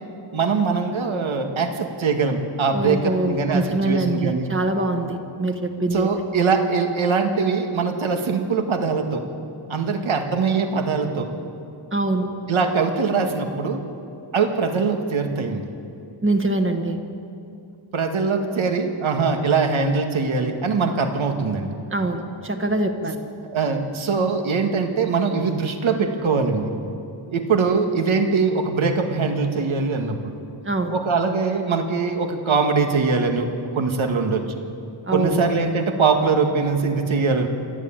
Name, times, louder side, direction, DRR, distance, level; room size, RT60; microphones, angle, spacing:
voice 1, 0.3-4.4 5.9-9.2 9.7-11.3 12.5-13.8 14.3-15.6 17.9-21.8 23.0-23.1 23.5-26.7 27.3-30.3 30.9-33.5 33.7-34.6 35.1-37.5, right 4 dB, 80° right, 4 dB, 2.0 m, -22 dB
voice 2, 2.7-6.1 11.9-12.3 16.2-17.0 21.9-23.1 30.6-30.9 35.0-35.4, right 2 dB, 25° right, 5 dB, 1.4 m, -23 dB
28.0 x 11.5 x 8.8 m, 2.6 s
wide cardioid pair, 175°, 47 cm